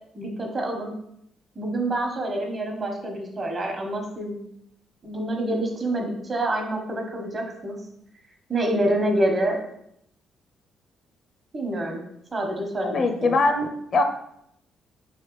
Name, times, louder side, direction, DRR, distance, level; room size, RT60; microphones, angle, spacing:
voice 1, 0.1-0.9 1.5-4.4 5.0-7.8 8.5-9.6 11.5-12.0 12.3-13.4, right 1 dB, 40° right, 2 dB, 1.1 m, -27 dB
voice 2, 12.8-14.0, left 3 dB, 50° left, 6 dB, 0.5 m, -22 dB
4.7 x 3.3 x 3.0 m, 0.74 s
cardioid pair, 90°, 0 cm